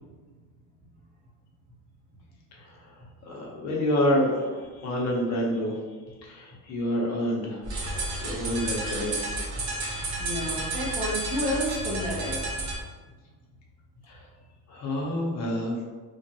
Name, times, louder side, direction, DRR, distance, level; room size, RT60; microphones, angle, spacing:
voice 1, 2.6-2.9 3.2-5.8 6.2-7.7 8.2-9.3 14.1-14.2 14.7-15.8, equal, 50° left, -2 dB, 0.8 m, -28 dB
sound 1, 7.6-12.8, right 2 dB, 55° right, 1.0 m, -31 dB
voice 2, 10.0-12.5, equal, 25° right, -4 dB, 0.7 m, -31 dB
3.0 x 2.5 x 2.7 m, 1.4 s
cardioid pair, 140°, 35 cm